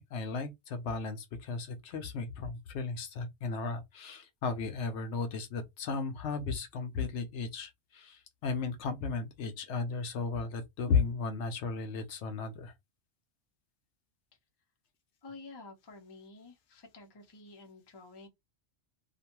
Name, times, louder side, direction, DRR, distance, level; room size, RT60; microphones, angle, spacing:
voice 1, 0.0-12.7, left 4 dB, 70° left, 0.9 m, -35 dB
voice 2, 15.2-18.3, left 3 dB, 25° left, 0.6 m, -50 dB
2.5 x 2.2 x 2.9 m
omnidirectional pair, 1.3 m